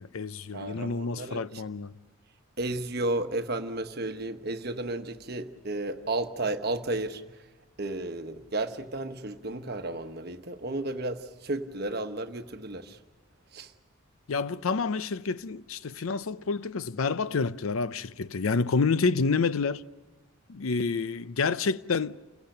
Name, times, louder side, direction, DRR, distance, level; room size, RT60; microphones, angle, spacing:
voice 1, 0.0-1.9 14.3-19.8 20.5-22.2, left 4 dB, 80° left, 0.6 m, -28 dB
voice 2, 0.5-1.4 2.6-7.2 7.8-13.0 13.5-13.7, right 2 dB, 45° right, 1.1 m, -33 dB
29.0 x 16.5 x 6.6 m
head